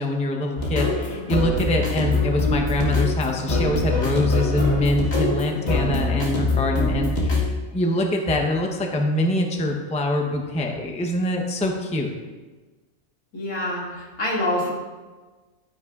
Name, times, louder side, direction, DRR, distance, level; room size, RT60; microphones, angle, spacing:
voice 1, 0.0-12.1, left 1 dB, 5° left, 2 dB, 0.6 m, -24 dB
sound 1, 0.6-7.5, left 2 dB, 50° left, 2.1 m, -23 dB
voice 2, 13.3-14.7, left 1 dB, 75° left, -5 dB, 2.8 m, -26 dB
12.0 x 10.5 x 2.4 m, 1.3 s
omnidirectional pair, 1.4 m